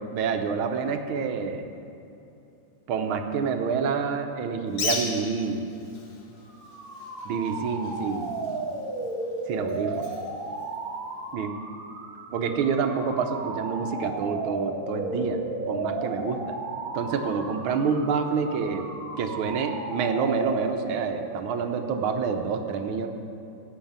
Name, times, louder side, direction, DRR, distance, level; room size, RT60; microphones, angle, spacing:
voice 1, 0.1-1.6 2.9-5.7 7.2-8.4 9.5-10.1 11.3-11.5 12.3-15.4 15.7-16.6 16.9-18.8 19.2-23.1, right 5 dB, 90° right, 6 dB, 1.7 m, -27 dB
Bird, 4.7-11.3, left 4 dB, 80° left, 2.1 m, -38 dB
sound 1, 6.5-21.2, right 3 dB, 50° right, 1.7 m, -34 dB
13.5 x 5.6 x 8.7 m, 2.7 s
omnidirectional pair, 2.2 m